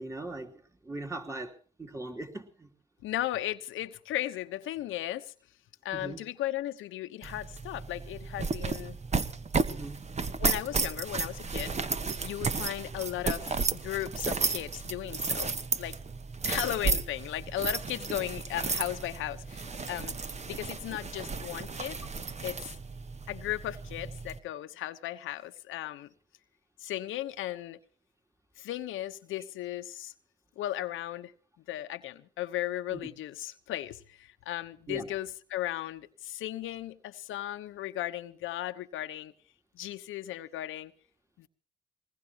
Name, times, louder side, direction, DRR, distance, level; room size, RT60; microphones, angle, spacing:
voice 1, 0.0-2.7 5.9-6.2 9.7-10.0 32.9-33.0 34.9-35.1, right 2 dB, 15° right, 3.2 m, -40 dB
voice 2, 3.0-5.3 5.8-9.0 10.4-11.7 12.2-15.5 15.8-16.0 16.4-20.2 20.4-22.0 22.4-22.7 23.3-26.1 26.8-27.8 28.6-30.1 30.6-31.3 31.7-39.3 39.7-40.9 41.4-41.5, left 14 dB, 85° left, 1.1 m, -36 dB
sound 1, 7.2-24.4, right 4 dB, 35° right, 1.4 m, -33 dB
22.0 x 19.5 x 3.0 m
cardioid pair, 90°, 20 cm